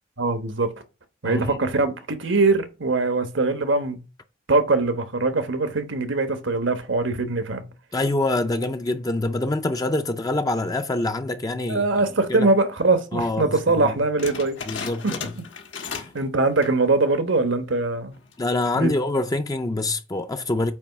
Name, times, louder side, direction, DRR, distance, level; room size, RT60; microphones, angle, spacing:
voice 1, 0.2-0.7 1.2-4.0 4.5-7.6 11.7-14.6 15.0-15.1 16.1-18.2 18.8-18.9, right 3 dB, 85° right, 1.3 m, -22 dB
voice 2, 1.2-1.6 7.9-11.9 12.3-12.5 13.1-14.0 14.7-15.3 15.8-16.0 18.4-20.7, left 2 dB, 20° left, 0.4 m, -25 dB
sound 1, 14.2-16.2 16.5-16.9 17.4-17.5 18.1-18.5, left 5 dB, 80° left, 1.5 m, -35 dB
8.5 x 3.2 x 5.9 m
head